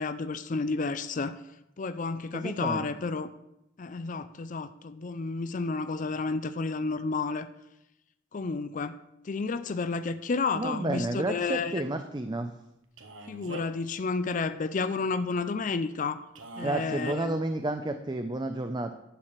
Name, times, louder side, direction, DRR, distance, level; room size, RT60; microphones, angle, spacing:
voice 1, 0.0-1.3 1.8-3.3 3.8-7.5 8.3-9.0 9.2-11.8 13.3-16.2 16.6-17.4, left 4 dB, 40° left, 11 dB, 0.5 m, -31 dB
voice 2, 2.3-2.9 10.5-12.5 16.6-18.9, right 2 dB, 20° right, 7 dB, 0.5 m, -31 dB
Male speech man speaking, 13.0-13.9 16.4-17.2, right 2 dB, 80° right, 1.2 m, -42 dB
11.5 x 4.9 x 7.3 m, 0.85 s
head